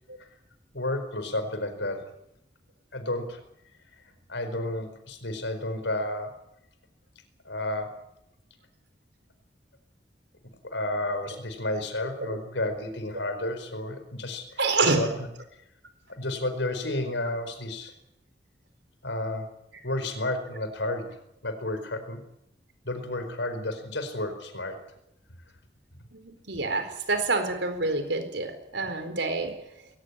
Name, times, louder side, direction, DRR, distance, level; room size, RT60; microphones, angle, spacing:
voice 1, 0.7-2.0 2.9-3.4 4.3-6.3 7.4-7.9 10.4-15.1 16.1-17.9 19.0-19.5 19.8-21.2 21.4-22.2 22.8-24.8, left 1 dB, 85° left, 8 dB, 4.8 m, -31 dB
voice 2, 14.6-15.1 26.1-29.6, right 3 dB, 80° right, 8 dB, 4.4 m, -27 dB
21.0 x 18.5 x 10.0 m, 0.79 s
head